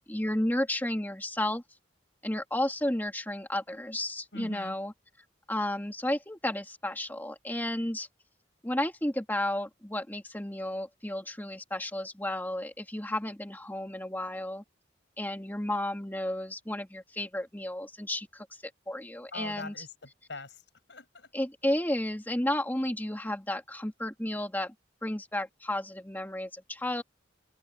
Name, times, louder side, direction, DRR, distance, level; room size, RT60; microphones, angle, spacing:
voice 1, 0.0-1.6 2.2-4.9 5.5-8.1 8.6-14.6 15.2-19.8 21.3-24.7 25.0-27.0, left 1 dB, 10° left, 2.0 m, -32 dB
voice 2, 4.3-4.8 19.3-20.6 20.9-21.3, left 2 dB, 75° left, 7.3 m, -42 dB
open air
head